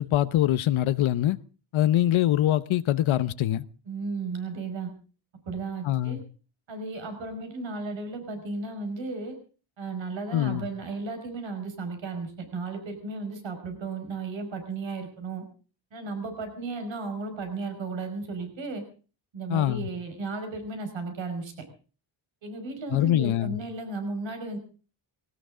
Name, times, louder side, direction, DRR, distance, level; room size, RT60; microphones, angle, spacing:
voice 1, 0.0-1.4 1.7-3.6 5.8-6.2 10.3-10.7 19.5-19.9 22.9-23.6, left 13 dB, 80° left, 0.9 m, -24 dB
voice 2, 3.9-4.9 5.5-6.2 6.7-9.3 9.8-15.4 15.9-18.8 19.3-21.5 22.4-24.6, right 3 dB, 70° right, 5.4 m, -34 dB
20.0 x 18.5 x 3.8 m
cardioid pair, 115°, 47 cm